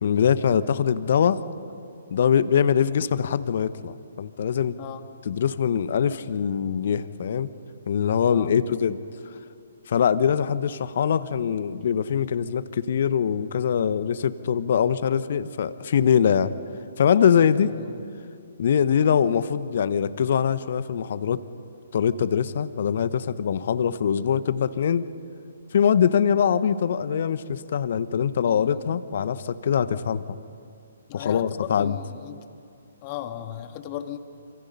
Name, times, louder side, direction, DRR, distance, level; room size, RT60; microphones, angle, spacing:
voice 1, 0.0-1.4 2.1-4.8 5.2-7.5 7.9-9.0 9.9-16.5 17.0-17.8 18.6-21.4 21.9-25.1 25.7-30.4 31.1-32.0, left 8 dB, 50° left, 14 dB, 1.1 m, -23 dB
voice 2, 8.3-8.7 17.6-18.0 28.5-28.9 31.1-32.4 33.0-34.2, left 11 dB, 30° left, 7 dB, 1.7 m, -37 dB
28.0 x 27.0 x 5.6 m, 2.4 s
figure-of-eight pair, 130°, 0 cm